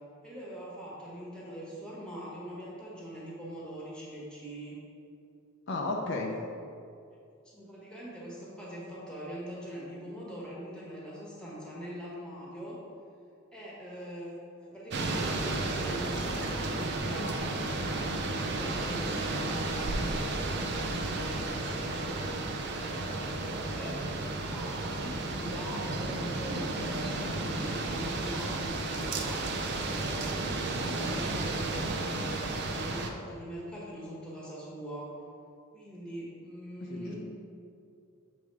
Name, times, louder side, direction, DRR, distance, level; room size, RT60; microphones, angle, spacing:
voice 1, 0.2-4.7 7.5-12.8 13.5-17.4 17.7-22.3 22.7-24.0 24.5-29.6 30.0-35.1 35.7-37.2, equal, 5° left, -6 dB, 1.3 m, -42 dB
voice 2, 5.7-6.3 36.9-37.2, left 2 dB, 60° left, 0 dB, 0.6 m, -33 dB
sound 1, 14.9-33.1, right 2 dB, 50° right, 0.5 m, -33 dB
7.3 x 3.5 x 4.7 m, 2.5 s
head